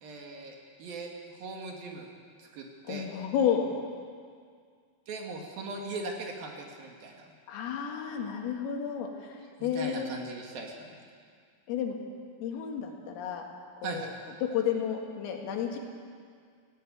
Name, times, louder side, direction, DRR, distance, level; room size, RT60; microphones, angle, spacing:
voice 1, 0.0-2.1 2.4-3.1 5.1-7.2 9.6-11.0 13.8-14.1, right 3 dB, 55° right, 1 dB, 3.2 m, -39 dB
voice 2, 2.9-3.7 7.5-10.1 11.7-12.0 12.4-13.5 13.8-14.0 14.4-15.8, left 8 dB, 90° left, 2 dB, 4.7 m, -31 dB
17.0 x 17.0 x 9.2 m, 2.1 s
omnidirectional pair, 5.8 m